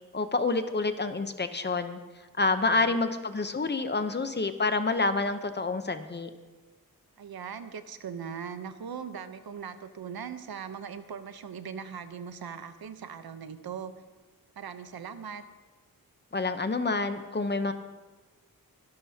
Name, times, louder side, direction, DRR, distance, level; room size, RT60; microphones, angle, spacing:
voice 1, 0.1-2.0 2.4-6.3 16.3-17.7, left 3 dB, 30° left, 9 dB, 0.8 m, -28 dB
voice 2, 2.5-3.0 7.2-13.9 14.5-15.4, right 7 dB, 90° right, 10 dB, 0.9 m, -40 dB
23.0 x 11.5 x 2.8 m, 1.3 s
wide cardioid pair, 150°, 36 cm